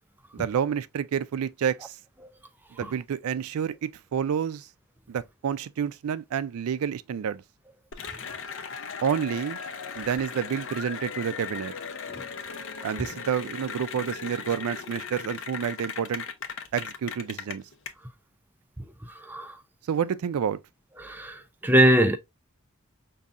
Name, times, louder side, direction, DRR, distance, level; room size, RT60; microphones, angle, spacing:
voice 1, 0.3-2.0 2.8-4.7 5.1-7.4 9.0-9.6 10.0-11.7 12.8-16.2 16.7-17.6 19.9-20.6, right 8 dB, 85° right, 0.4 m, -29 dB
Cheering / Applause, 7.9-17.9, left 6 dB, 60° left, 0.6 m, -37 dB
voice 2, 21.0-22.2, equal, 10° right, 0.4 m, -21 dB
5.3 x 2.7 x 2.4 m
head